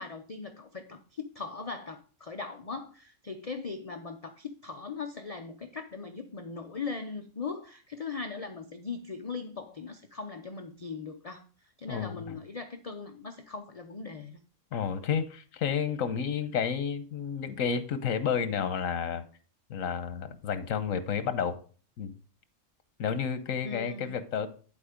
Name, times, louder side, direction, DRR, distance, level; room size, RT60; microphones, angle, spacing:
voice 1, 0.0-11.5 11.8-14.4 23.6-24.1, left 4 dB, 35° left, 5 dB, 0.6 m, -39 dB
voice 2, 11.9-12.3 14.7-19.2 19.7-21.6 22.0-22.1 23.0-24.5, left 7 dB, 85° left, 11 dB, 1.3 m, -31 dB
11.0 x 4.5 x 5.1 m, 0.40 s
omnidirectional pair, 1.4 m